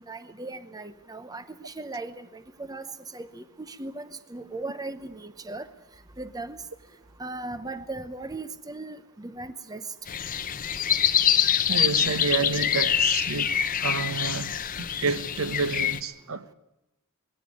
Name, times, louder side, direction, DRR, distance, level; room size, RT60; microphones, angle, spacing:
voice 1, 0.1-2.9 3.1-5.7 6.2-6.6 7.2-9.8, right 2 dB, 15° right, 0.8 m, -38 dB
sound 1, 10.1-16.0, left 9 dB, 40° left, 0.9 m, -25 dB
voice 2, 11.7-14.5 15.0-16.5, right 4 dB, 65° right, 1.1 m, -29 dB
21.0 x 17.0 x 9.8 m
head